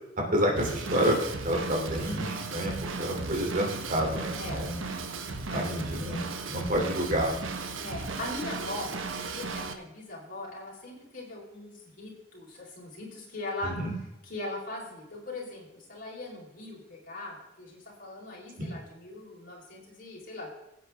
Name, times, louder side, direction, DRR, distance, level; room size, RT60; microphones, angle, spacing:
voice 1, 0.3-1.2 1.4-4.7 5.5-6.2 6.5-7.3 13.6-13.9 18.6-18.7, equal, 45° right, 0 dB, 3.1 m, -29 dB
Drum kit / Drum, 0.6-9.7, right 3 dB, 90° right, 1.2 m, -36 dB
voice 2, 4.3-4.7 5.5-5.7 7.8-13.7 14.2-20.5, left 2 dB, 45° left, -4 dB, 4.4 m, -40 dB
17.0 x 8.3 x 3.6 m, 0.90 s
head